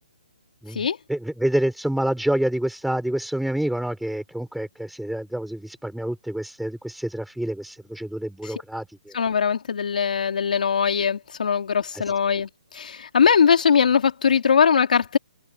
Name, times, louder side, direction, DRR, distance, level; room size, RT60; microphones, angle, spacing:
voice 1, 0.6-9.1 11.9-12.0, right 1 dB, ahead, 4.4 m, -27 dB
voice 2, 9.1-12.5 12.7-15.2, left 6 dB, 70° left, 3.3 m, -20 dB
open air
hypercardioid pair, 155°, 5 cm